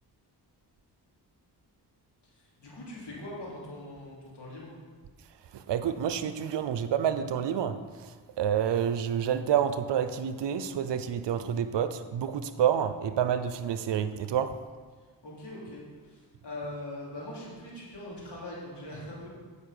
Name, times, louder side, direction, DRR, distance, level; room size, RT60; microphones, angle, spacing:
voice 1, 2.3-4.7 15.2-19.3, left 1 dB, 75° left, -5 dB, 3.1 m, -42 dB
voice 2, 5.5-14.5, right 9 dB, 80° right, 11 dB, 0.7 m, -28 dB
9.0 x 5.2 x 6.6 m, 1.5 s
cardioid pair, 70°, 42 cm